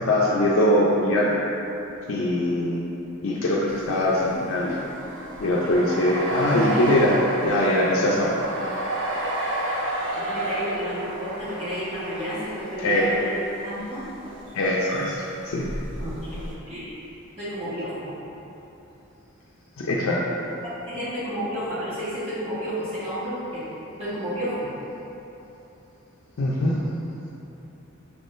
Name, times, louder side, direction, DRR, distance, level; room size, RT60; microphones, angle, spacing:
voice 1, 0.0-1.3 2.1-2.8 3.2-4.8 5.4-7.2 7.4-8.3 12.8-13.0 14.5-15.1 15.4-15.7 19.8-20.2 26.4-26.8, left 1 dB, 80° left, -5 dB, 0.5 m, -22 dB
sound 1, 3.7-13.2 14.1-14.6 14.9-16.5, right 1 dB, 60° right, 0.6 m, -31 dB
voice 2, 10.1-14.0 16.0-17.0 17.4-18.1 20.9-23.7 24.0-24.7, equal, 30° right, -13 dB, 1.4 m, -31 dB
5.9 x 3.6 x 2.6 m, 3.0 s
head